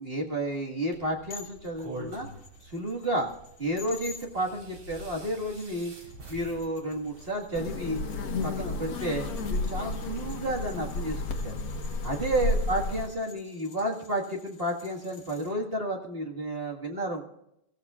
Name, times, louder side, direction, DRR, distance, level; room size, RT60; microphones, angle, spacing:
voice 1, 0.0-2.3 2.6-3.3 3.6-5.9 6.3-8.0 8.4-11.5 12.0-17.3, right 1 dB, 30° right, -1 dB, 1.1 m, -31 dB
sound 1, 0.9-12.3, right 1 dB, 50° right, 5.1 m, -48 dB
sound 2, 1.3-4.3 5.3-15.5, left 5 dB, 35° left, 2.5 m, -52 dB
sound 3, 7.5-13.1, left 2 dB, 55° left, 1.0 m, -32 dB
27.5 x 15.5 x 2.4 m, 0.81 s
omnidirectional pair, 3.7 m